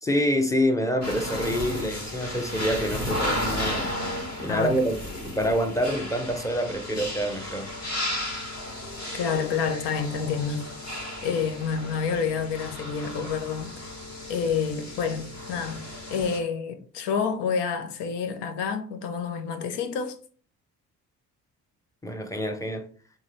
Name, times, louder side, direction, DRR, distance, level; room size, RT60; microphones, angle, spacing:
voice 1, 0.0-3.9 4.4-7.7 22.0-22.8, equal, 5° left, 0.9 m, -26 dB
georgia informationcenter burpsqueak, 1.0-16.4, left 1 dB, 35° left, 1.7 m, -34 dB
voice 2, 4.4-4.8 9.1-14.0 14.3-20.2, left 6 dB, 65° left, 0.8 m, -29 dB
3.6 x 3.1 x 3.1 m
hypercardioid pair, 45°, 45 cm